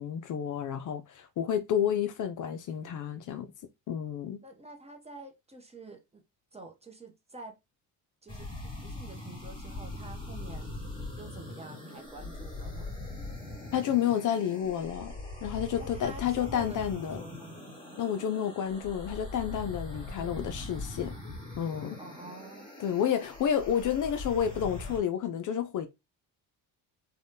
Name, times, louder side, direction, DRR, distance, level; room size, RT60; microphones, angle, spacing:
voice 1, 0.0-3.5 3.9-4.4 13.7-15.1 15.4-17.2 18.0-21.2 21.6-22.0 22.8-25.9, left 9 dB, 50° left, 0.4 m, -30 dB
voice 2, 4.4-6.2 6.5-7.6 8.2-10.7 11.2-13.0 15.8-17.6 21.0-21.2 22.0-22.7, right 2 dB, 15° right, 0.6 m, -48 dB
sound 1, 8.3-25.0, left 2 dB, 10° left, 1.6 m, -41 dB
3.4 x 2.2 x 2.7 m
cardioid pair, 115°, 40 cm